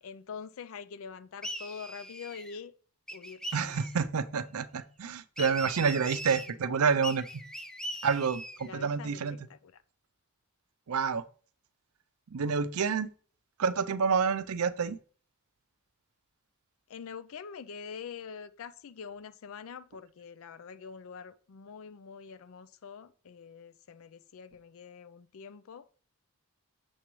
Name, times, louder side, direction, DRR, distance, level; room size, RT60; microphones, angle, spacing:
voice 1, 0.0-2.7 3.1-3.4 8.6-9.2 9.5-9.8 16.9-25.8, left 6 dB, 65° left, 0.4 m, -45 dB
sound 1, 1.4-2.6 3.1-4.0 5.4-6.5 7.0-8.7, equal, 5° left, 0.5 m, -41 dB
voice 2, 3.5-7.2 8.0-9.4 10.9-11.2 12.3-13.1 13.6-15.0, right 5 dB, 80° right, 0.5 m, -28 dB
7.3 x 6.9 x 3.1 m
head